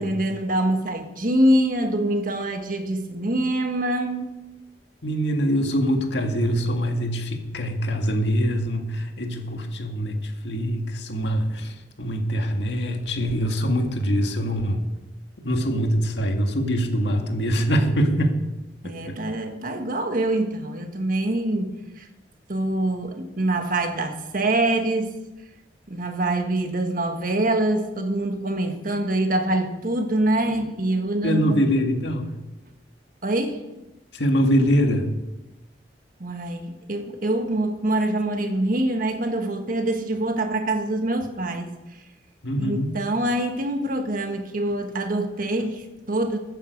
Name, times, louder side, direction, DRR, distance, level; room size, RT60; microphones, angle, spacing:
voice 1, 0.0-4.3 18.8-22.1 22.5-25.2 25.9-31.7 33.2-33.6 36.2-41.7 42.6-46.4, right 1 dB, 50° right, 5 dB, 1.5 m, -25 dB
voice 2, 5.0-14.8 15.4-18.4 18.8-19.2 31.2-32.3 34.1-35.1 42.4-42.9, equal, 75° left, 4 dB, 1.9 m, -23 dB
14.5 x 9.2 x 5.3 m, 1.0 s
head